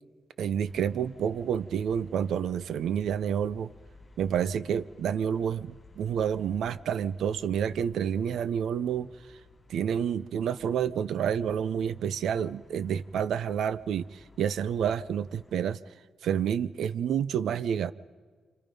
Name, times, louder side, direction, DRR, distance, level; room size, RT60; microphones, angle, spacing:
voice 1, 0.4-3.7 4.2-9.4 9.7-15.8 16.2-17.9, right 8 dB, 75° right, 16 dB, 0.6 m, -29 dB
sound 1, 0.7-15.6, left 2 dB, 20° left, 5.9 m, -56 dB
30.0 x 25.5 x 5.3 m, 1.5 s
wide cardioid pair, 140°, 0 cm